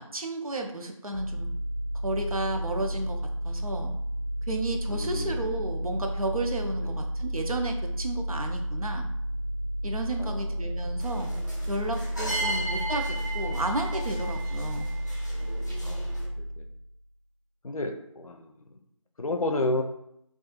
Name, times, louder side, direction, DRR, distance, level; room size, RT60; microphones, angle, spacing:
voice 1, 0.0-1.5 2.0-3.2 3.4-3.9 4.5-9.1 9.8-11.3 11.7-14.9, right 2 dB, 90° right, 3 dB, 0.5 m, -32 dB
sound 1, 1.1-16.9, equal, 40° right, 0.5 m, -32 dB
voice 2, 4.9-5.4 10.2-10.4 12.3-12.7 15.8-16.2 16.6-16.7 17.6-18.5 19.2-19.8, left 2 dB, 85° left, 5 dB, 0.5 m, -31 dB
sound 2, 11.0-16.3, right 1 dB, 30° left, 0.5 m, -36 dB
2.4 x 2.2 x 3.0 m, 0.77 s
figure-of-eight pair, 175°, 18 cm